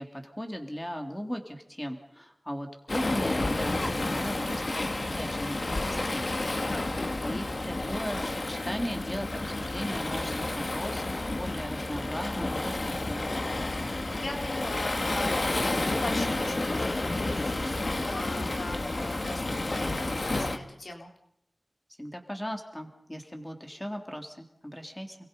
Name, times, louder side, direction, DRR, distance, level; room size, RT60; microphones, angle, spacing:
voice 1, 0.0-6.3 7.2-13.3 22.0-25.2, equal, 10° left, 4 dB, 3.5 m, -37 dB
Waves surf, 2.9-20.6, left 2 dB, 55° left, 2.0 m, -30 dB
voice 2, 6.6-7.1 13.9-21.1, left 2 dB, 80° left, 1 dB, 3.9 m, -40 dB
29.5 x 22.0 x 5.5 m, 0.77 s
wide cardioid pair, 65°, 0 cm